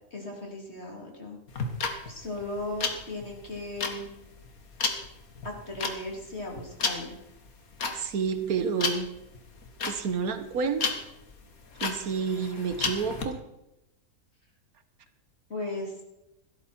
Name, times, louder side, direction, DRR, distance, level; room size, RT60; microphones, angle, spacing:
voice 1, 0.1-1.4 2.1-4.1 5.4-7.2 15.5-16.0, left 2 dB, 45° left, 0 dB, 3.6 m, -37 dB
sound 1, 1.5-13.2, left 4 dB, 70° left, 2.1 m, -33 dB
voice 2, 7.9-9.1 9.9-10.9 11.8-13.4, right 5 dB, 80° right, 9 dB, 1.6 m, -29 dB
16.0 x 13.0 x 4.5 m, 0.90 s
omnidirectional pair, 1.5 m